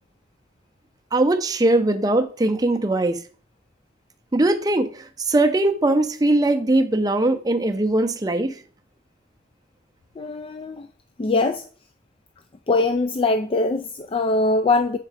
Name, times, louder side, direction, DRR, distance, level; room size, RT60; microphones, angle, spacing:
voice 1, 1.1-3.2 4.3-8.6, right 2 dB, 20° right, 0.5 m, -20 dB
voice 2, 10.2-10.9 11.2-11.7 12.7-15.0, left 3 dB, 30° left, 0.3 m, -22 dB
7.4 x 3.9 x 4.8 m
head